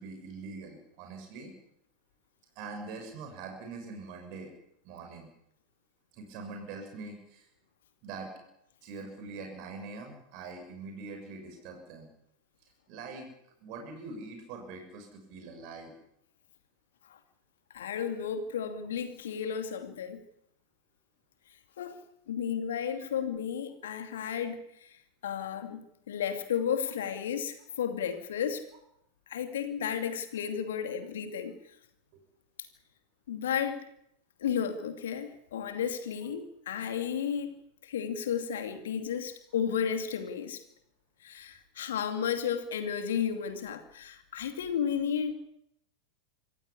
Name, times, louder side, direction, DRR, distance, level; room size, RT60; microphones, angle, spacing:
voice 1, 0.0-1.5 2.5-4.5 4.8-5.3 6.1-7.4 8.0-8.3 8.8-12.1 12.9-13.3 13.6-15.9 23.0-23.1 32.1-32.2, right 4 dB, 45° right, 3 dB, 6.6 m, -43 dB
voice 2, 17.7-20.2 21.8-22.0 22.3-28.6 29.3-31.6 33.3-33.9 34.4-37.5 37.8-40.6 41.2-45.3, left 8 dB, 60° left, 7 dB, 2.6 m, -33 dB
26.5 x 15.0 x 8.5 m, 0.77 s
figure-of-eight pair, 90°, 0 cm